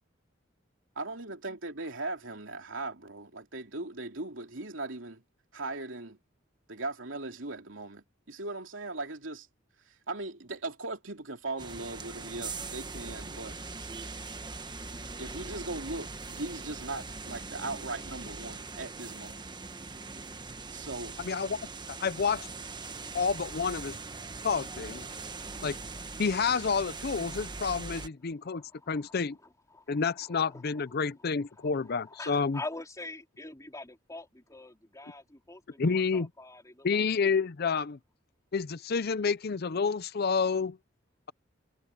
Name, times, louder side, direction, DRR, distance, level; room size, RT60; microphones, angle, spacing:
voice 1, 1.0-5.2 5.5-6.2 6.7-9.5 10.1-13.6 15.2-19.4 20.7-21.1, right 2 dB, 80° right, 2.9 m, -39 dB
sound 1, 11.6-28.1, right 3 dB, 25° right, 1.2 m, -41 dB
voice 2, 21.2-21.6 21.9-22.5 23.1-24.0 24.4-25.1 25.6-25.8 26.2-29.4 29.9-32.6 35.8-36.3 36.8-38.0 38.5-40.8, left 5 dB, 55° left, 0.6 m, -29 dB
voice 3, 28.4-29.2 29.7-30.9 31.6-37.3, left 2 dB, 15° left, 3.7 m, -45 dB
head